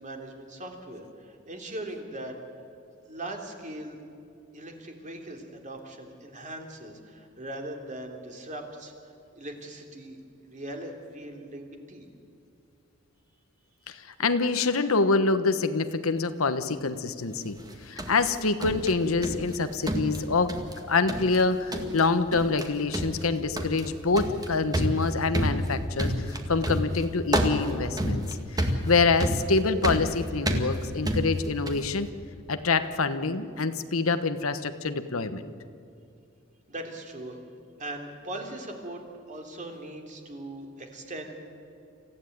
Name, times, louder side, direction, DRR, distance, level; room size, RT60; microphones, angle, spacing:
voice 1, 0.0-2.4 3.0-4.0 4.5-10.2 10.4-12.1 36.7-37.4 37.8-41.3, right 1 dB, 35° right, 3 dB, 3.2 m, -40 dB
voice 2, 13.9-17.6 17.8-20.6 20.9-28.2 28.5-32.1 32.5-35.5, left 4 dB, 85° left, 10 dB, 1.2 m, -26 dB
jumps on floor, 17.6-19.6 19.9-20.8 21.1-21.4 21.7-22.1 22.3-22.7 22.9-31.9, equal, 20° right, 2.1 m, -29 dB
26.5 x 15.5 x 9.4 m, 2.5 s
head